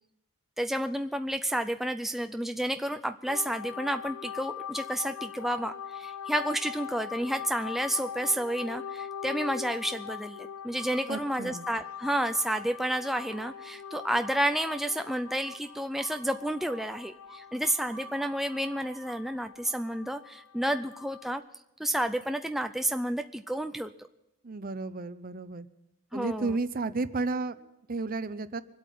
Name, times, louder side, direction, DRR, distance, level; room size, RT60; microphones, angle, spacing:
voice 1, 0.6-21.4 21.8-23.9 26.1-26.5, right 1 dB, ahead, 7 dB, 0.4 m, -31 dB
sound 1, 3.3-21.3, left 8 dB, 80° left, 0.4 m, -42 dB
sound 2, 10.8-11.5 11.9-12.5 13.1-19.5, right 4 dB, 65° right, 1.5 m, -52 dB
voice 2, 11.1-11.7 24.4-25.7 26.1-28.6, right 3 dB, 40° right, 14 dB, 0.7 m, -33 dB
24.5 x 8.4 x 5.5 m, 0.90 s
head